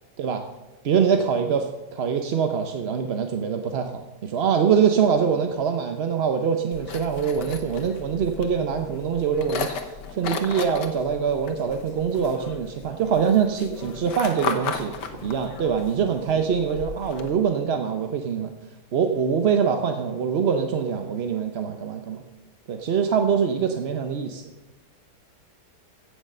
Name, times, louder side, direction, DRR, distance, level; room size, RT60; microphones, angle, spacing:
voice 1, 0.8-14.9 15.2-18.5 18.9-22.2 22.7-24.4, right 7 dB, 50° right, 5 dB, 0.8 m, -24 dB
sound 1, 6.7-17.3, left 6 dB, 90° left, 1.7 m, -35 dB
16.0 x 6.6 x 6.5 m, 1.1 s
omnidirectional pair, 1.8 m